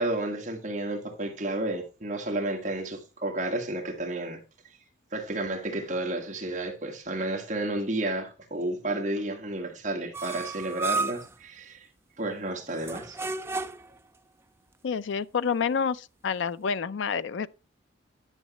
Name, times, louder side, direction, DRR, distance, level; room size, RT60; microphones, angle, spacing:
voice 1, 0.0-4.4 5.1-11.9 12.2-13.2, right 2 dB, 35° right, 1.6 m, -31 dB
sound 1, 10.1-11.3 12.8-14.0, right 3 dB, 10° right, 0.3 m, -32 dB
voice 2, 14.8-17.5, left 6 dB, 65° left, 0.4 m, -28 dB
10.5 x 6.5 x 2.9 m
head